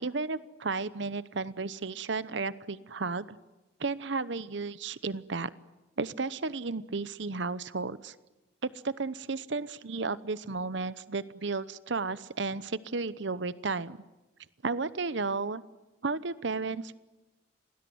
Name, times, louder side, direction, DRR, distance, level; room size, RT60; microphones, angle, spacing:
voice 1, 0.0-3.4 3.8-5.5 6.0-8.1 8.6-14.0 14.6-15.6 16.0-17.0, right 4 dB, 75° right, 16 dB, 0.9 m, -33 dB
27.5 x 19.5 x 9.5 m, 1.1 s
head